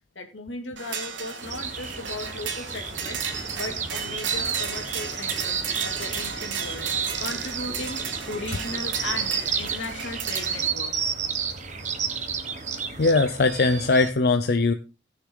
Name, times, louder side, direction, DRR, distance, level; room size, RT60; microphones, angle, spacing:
voice 1, 0.1-3.2 3.5-6.9 7.2-8.0 8.3-11.2, left 2 dB, 80° left, 4 dB, 2.5 m, -37 dB
sound 1, 0.8-10.7, right 6 dB, 75° right, 2.1 m, -35 dB
sound 2, 1.4-14.1, right 6 dB, 40° right, 1.4 m, -31 dB
sound 3, 2.5-9.8, right 1 dB, 10° right, 1.0 m, -45 dB
voice 2, 13.0-14.7, left 3 dB, 55° left, 8 dB, 0.6 m, -20 dB
18.0 x 6.5 x 3.9 m, 0.31 s
head